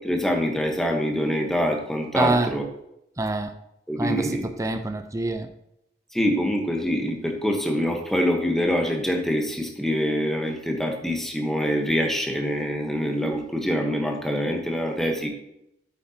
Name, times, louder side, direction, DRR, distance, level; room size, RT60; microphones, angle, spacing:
voice 1, 0.0-2.6 3.9-4.5 6.1-15.3, equal, ahead, 2 dB, 1.1 m, -25 dB
voice 2, 2.1-2.5 3.2-3.5 4.0-5.5, right 2 dB, 20° right, 7 dB, 0.5 m, -26 dB
8.7 x 8.2 x 2.8 m, 0.81 s
head